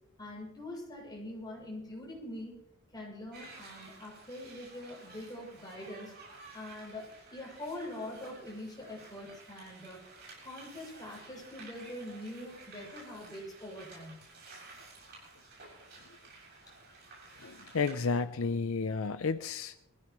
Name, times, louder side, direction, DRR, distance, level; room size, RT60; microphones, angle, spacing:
voice 1, 0.2-2.6 2.9-6.1 6.5-10.0 10.4-14.2, left 1 dB, 20° left, -3 dB, 7.1 m, -44 dB
sound 1, 3.3-18.2, right 3 dB, 50° right, 7.3 m, -53 dB
voice 2, 17.4-19.8, left 4 dB, 70° left, 11 dB, 0.6 m, -32 dB
23.5 x 16.0 x 3.1 m, 0.81 s
head